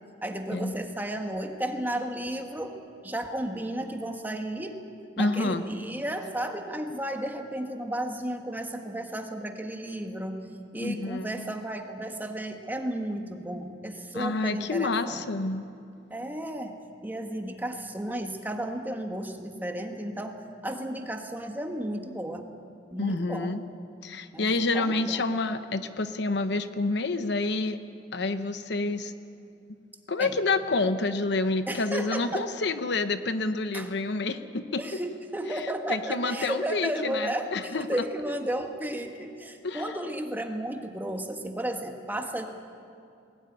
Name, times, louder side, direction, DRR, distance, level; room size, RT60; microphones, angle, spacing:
voice 1, 0.2-2.8 3.0-4.8 5.2-10.4 10.7-15.3 16.1-16.7 17.0-22.5 22.9-23.5 24.3-25.2 30.2-30.3 31.7-32.5 33.7-33.9 34.8-42.4, right 1 dB, 10° right, 4 dB, 1.5 m, -33 dB
voice 2, 5.2-5.6 10.8-11.5 14.1-15.7 23.0-23.6 24.0-27.8 28.1-29.1 30.1-34.8 35.9-38.0 39.6-39.9, left 3 dB, 65° left, 10 dB, 0.9 m, -28 dB
20.5 x 17.5 x 9.7 m, 2.5 s
head